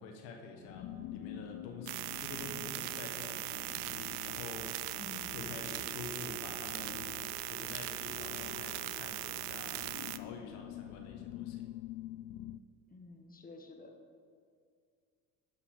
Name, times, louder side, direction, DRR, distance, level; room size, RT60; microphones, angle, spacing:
voice 1, 0.0-4.8 5.3-7.1 7.4-11.7, left 4 dB, 75° left, 3 dB, 1.4 m, -48 dB
sound 1, 0.6-12.6, left 14 dB, 60° left, 0.5 m, -47 dB
voice 2, 0.9-1.3 5.0-5.3 12.9-13.9, left 3 dB, 20° left, 4 dB, 1.5 m, -51 dB
sound 2, 1.9-10.2, right 16 dB, 75° right, 0.6 m, -40 dB
sound 3, 4.3-9.9, left 2 dB, ahead, 1.3 m, -61 dB
11.5 x 5.7 x 6.4 m, 2.2 s
hypercardioid pair, 65°, 41 cm